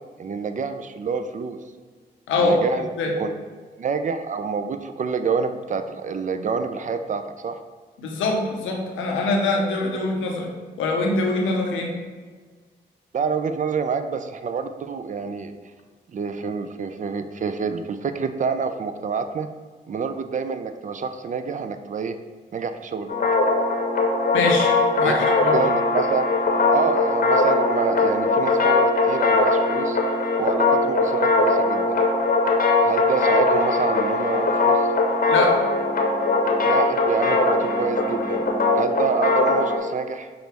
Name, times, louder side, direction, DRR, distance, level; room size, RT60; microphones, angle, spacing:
voice 1, 0.2-1.6 2.4-3.4 3.8-7.6 13.1-15.5 16.1-19.5 19.9-22.2 22.5-23.2 25.0-26.3 26.7-30.0 30.4-32.0 32.8-34.9 36.6-38.4 38.7-40.3, right 5 dB, 40° right, 9 dB, 0.4 m, -27 dB
voice 2, 8.0-10.5 10.8-11.9 24.3-24.7 25.0-25.5 35.3-35.6, left 3 dB, 85° left, 1 dB, 0.7 m, -23 dB
sound 1, 23.1-39.8, left 3 dB, 45° left, 0.8 m, -20 dB
5.7 x 2.0 x 3.4 m, 1.4 s
supercardioid pair, 50°, 20 cm